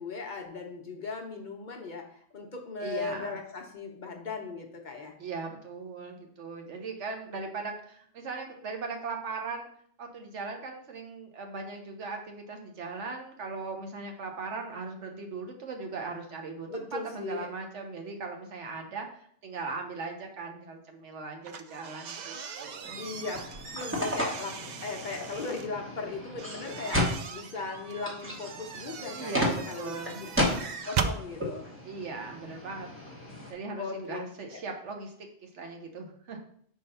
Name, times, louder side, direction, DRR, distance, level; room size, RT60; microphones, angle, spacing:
voice 1, 0.0-5.1 16.7-17.5 23.0-23.4 23.7-31.7 33.8-34.2 34.5-34.6, left 4 dB, 45° left, 2 dB, 0.9 m, -38 dB
voice 2, 2.8-3.3 5.2-9.7 10.0-23.0 29.1-30.2 31.8-32.9 33.5-36.4, right 4 dB, 85° right, 3 dB, 1.3 m, -39 dB
sound 1, 21.4-25.7 26.4-31.2, right 6 dB, 60° right, 0.4 m, -38 dB
sound 2, 22.8-33.5, left 1 dB, 10° right, 1.1 m, -34 dB
4.8 x 3.7 x 5.4 m, 0.62 s
omnidirectional pair, 1.2 m